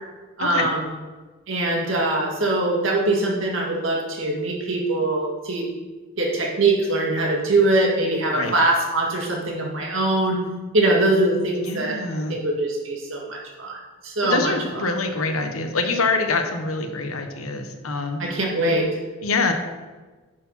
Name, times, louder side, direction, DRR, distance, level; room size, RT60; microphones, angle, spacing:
voice 1, 0.4-0.8 1.5-5.7 6.2-10.4 10.7-12.0 12.3-14.5 18.2-18.9, right 2 dB, 65° right, -1 dB, 2.1 m, -22 dB
voice 2, 11.6-12.4 14.2-18.2 19.2-19.5, left 3 dB, 85° left, 6 dB, 1.1 m, -25 dB
9.7 x 4.7 x 5.7 m, 1.3 s
head